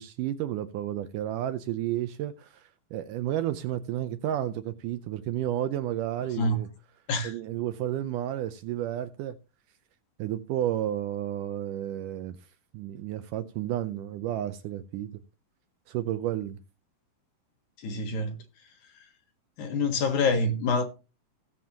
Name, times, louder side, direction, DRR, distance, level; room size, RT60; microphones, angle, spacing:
voice 1, 0.0-6.7 7.2-9.4 10.2-12.4 12.7-15.1 15.9-16.6, right 12 dB, 80° right, 2.0 m, -31 dB
voice 2, 17.8-18.4 19.6-20.8, left 3 dB, 60° left, 2.6 m, -26 dB
17.0 x 7.2 x 2.9 m
omnidirectional pair, 4.1 m